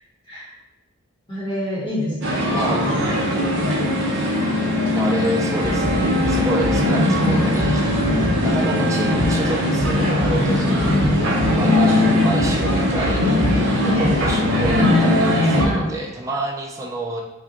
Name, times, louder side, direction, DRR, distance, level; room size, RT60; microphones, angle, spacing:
voice 1, 1.3-2.7 8.0-8.4 13.8-14.1 15.6-16.0, equal, 25° left, -9 dB, 0.9 m, -26 dB
sound 1, 2.2-15.7, left 1 dB, 60° right, 0.7 m, -19 dB
voice 2, 2.5-3.4 5.0-7.8 8.4-13.2 13.8-17.2, right 2 dB, 15° right, -1 dB, 0.3 m, -28 dB
4.8 x 2.2 x 2.9 m, 1.0 s
head